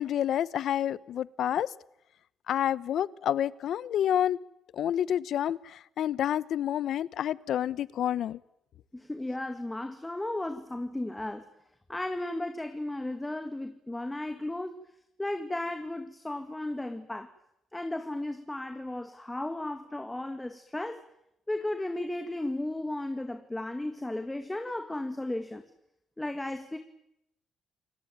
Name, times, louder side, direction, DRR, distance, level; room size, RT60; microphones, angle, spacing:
voice 1, 0.0-1.7 2.5-4.4 4.7-8.4, left 10 dB, 70° left, 20 dB, 0.9 m, -29 dB
voice 2, 8.9-11.5 11.9-14.8 15.2-17.3 17.7-21.0 21.5-25.6 26.2-26.8, left 1 dB, 10° left, 8 dB, 2.1 m, -35 dB
29.0 x 18.0 x 9.2 m, 0.81 s
cardioid pair, 90°, 0 cm